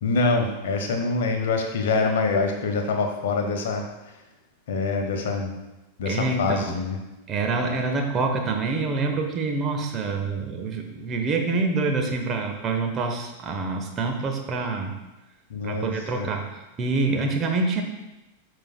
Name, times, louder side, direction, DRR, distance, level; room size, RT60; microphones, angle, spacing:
voice 1, 0.0-3.8 4.7-5.5 6.0-7.0 15.5-16.3, left 3 dB, 55° left, 4 dB, 1.0 m, -25 dB
voice 2, 6.0-6.8 7.3-14.9 15.6-16.5 16.8-17.8, right 3 dB, 25° right, 3 dB, 1.0 m, -26 dB
12.5 x 4.5 x 2.2 m, 1.0 s
figure-of-eight pair, 90°, 0 cm